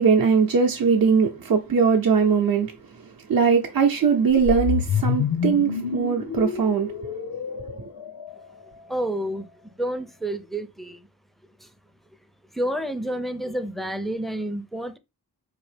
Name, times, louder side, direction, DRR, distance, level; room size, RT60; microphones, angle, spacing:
voice 1, 0.0-2.7 3.3-6.9, right 6 dB, 55° right, 0.6 m, -20 dB
sound 1, 4.3-8.6, left 7 dB, 90° left, 0.6 m, -28 dB
voice 2, 8.9-9.5 9.8-11.0 12.6-15.0, right 1 dB, ahead, 0.4 m, -29 dB
4.0 x 2.8 x 3.2 m
wide cardioid pair, 50°, 41 cm